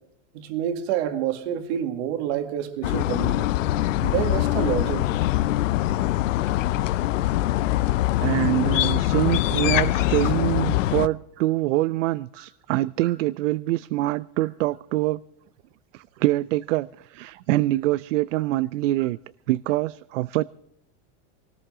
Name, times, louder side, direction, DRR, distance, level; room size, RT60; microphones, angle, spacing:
voice 1, 0.3-3.5 4.0-5.1 8.7-8.8 10.2-10.3 12.4-12.5, right 10 dB, 60° right, 2.1 m, -28 dB
sound 1, 2.8-11.1, left 15 dB, 90° left, 0.7 m, -23 dB
voice 2, 8.2-15.2 15.9-19.2 19.5-20.4, right 17 dB, 80° right, 0.5 m, -25 dB
21.0 x 18.5 x 3.7 m
supercardioid pair, 150°, 37 cm